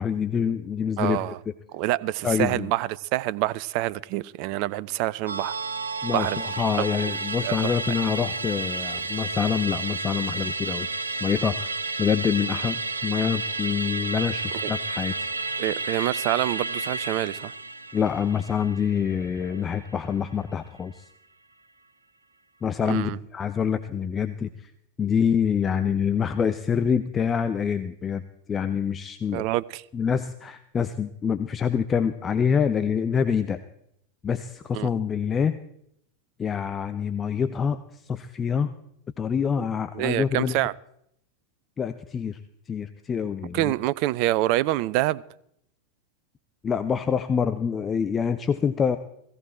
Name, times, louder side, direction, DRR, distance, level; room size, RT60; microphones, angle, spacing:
voice 1, 0.0-1.2 2.2-2.7 6.0-10.9 11.2-11.7 12.0-15.3 17.9-21.0 22.6-24.7 25.0-28.2 28.5-29.5 29.9-33.6 34.2-35.5 36.4-38.7 39.2-40.6 41.8-42.4 42.7-43.7 46.6-49.0, left 7 dB, 20° left, 0.7 m, -26 dB
voice 2, 1.0-1.4 1.7-5.5 6.1-6.4 7.0-7.1 7.4-7.8 14.6-14.7 15.6-17.5 22.9-23.2 29.3-29.8 34.7-34.9 39.6-39.7 39.9-40.7 43.5-45.2, right 16 dB, 45° right, 0.5 m, -26 dB
Musical instrument, 5.3-19.9 20.3-20.4, right 3 dB, 80° right, 0.8 m, -31 dB
16.5 x 16.0 x 4.4 m
figure-of-eight pair, 90°, 0 cm